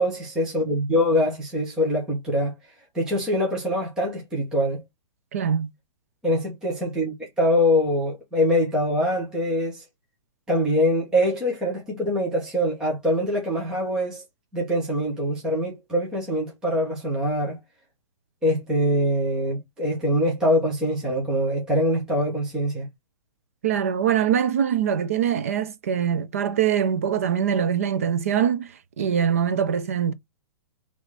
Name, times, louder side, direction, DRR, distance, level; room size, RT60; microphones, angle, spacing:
voice 1, 0.0-2.5 2.9-4.8 6.2-9.8 10.5-14.2 14.5-17.6 18.4-22.9, equal, 5° right, 0.7 m, -24 dB
voice 2, 5.3-5.7 23.6-30.1, right 8 dB, 25° right, 0.4 m, -23 dB
3.9 x 3.1 x 3.3 m
hypercardioid pair, 175°, 17 cm